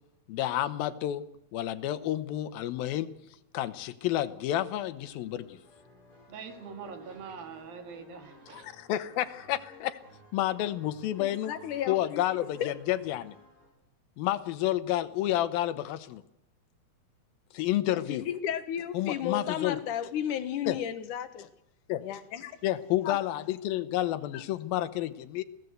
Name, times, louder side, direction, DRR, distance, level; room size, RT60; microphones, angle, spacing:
voice 1, 0.3-1.2 1.5-3.1 3.5-5.6 8.5-10.0 10.3-11.5 11.9-13.3 14.2-16.2 17.5-18.2 18.9-19.8 20.7-20.8 21.9-22.0 22.6-25.4, left 13 dB, 85° left, 12 dB, 2.8 m, -30 dB
sound 1, 4.9-13.7, left 2 dB, 25° left, 7.0 m, -56 dB
voice 2, 6.3-8.7, right 6 dB, 80° right, 6 dB, 4.1 m, -43 dB
voice 3, 11.2-12.2 12.6-12.7 18.1-21.5 22.0-22.6 23.0-23.2, left 9 dB, 65° left, 10 dB, 2.6 m, -33 dB
25.0 x 16.5 x 8.0 m, 0.86 s
omnidirectional pair, 4.1 m